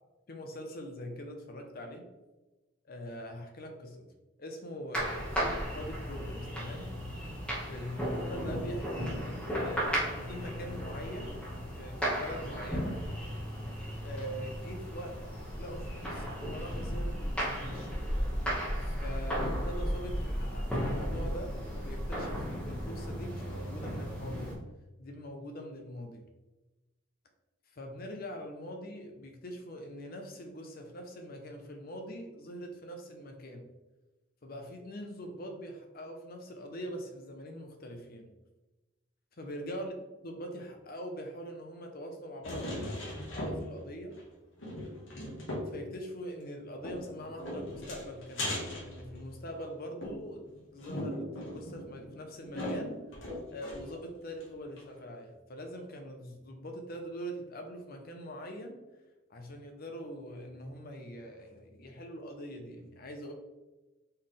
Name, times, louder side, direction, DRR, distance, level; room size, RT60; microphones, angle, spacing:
voice 1, 0.3-2.0 2.8-4.1 4.4-6.9 7.7-10.0 10.2-11.5 11.8-13.0 14.0-15.2 15.6-17.9 18.8-24.5 25.0-26.2 27.7-33.7 34.4-38.3 39.4-40.0 40.2-44.2 45.7-50.5 50.7-53.0 53.5-58.8 59.3-63.3, equal, 45° left, 4 dB, 0.7 m, -43 dB
sound 1, 4.9-24.6, equal, 5° left, 1.1 m, -35 dB
sound 2, 42.4-43.9 44.2-44.3 44.6-45.8 46.8-49.6 50.0-54.0 54.4-54.5 54.8-54.9, left 1 dB, 65° left, 1.3 m, -39 dB
4.4 x 3.2 x 3.7 m, 1.1 s
head